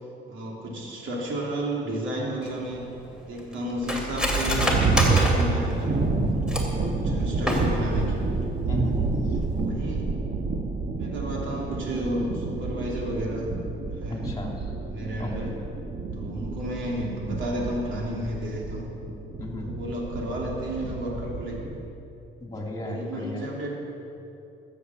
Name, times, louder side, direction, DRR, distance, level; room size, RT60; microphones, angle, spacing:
voice 1, 0.3-2.8 3.2-6.0 6.7-8.3 9.4-10.1 11.0-13.5 14.0-14.4 14.9-15.6 16.1-18.9 19.6-21.7 22.8-23.7, equal, 75° right, -2 dB, 3.1 m, -32 dB
Cutlery silverware, 2.4-6.9 7.3-8.0 8.4-8.5 8.8-9.1 9.5-9.7, equal, 5° right, 2.6 m, -28 dB
sound 1, 3.9-21.9, right 3 dB, 40° right, 1.1 m, -29 dB
voice 2, 8.7-9.1 14.1-14.7 15.2-15.5 19.4-19.7 22.4-23.4, left 1 dB, 20° left, 0 dB, 3.0 m, -34 dB
14.0 x 7.8 x 7.2 m, 2.8 s
cardioid pair, 90°, 20 cm